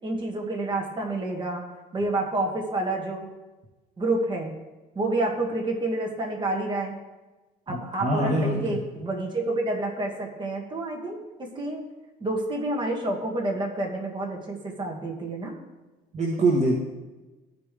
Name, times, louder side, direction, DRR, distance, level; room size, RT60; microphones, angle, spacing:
voice 1, 0.0-1.6 1.9-3.3 4.0-4.5 5.0-7.0 7.7-11.8 12.2-15.5, right 2 dB, 25° right, 0 dB, 1.9 m, -29 dB
voice 2, 7.7-8.8 16.1-16.8, right 2 dB, 45° right, -2 dB, 1.4 m, -24 dB
14.5 x 5.1 x 3.4 m, 1.1 s
cardioid pair, 110°, 17 cm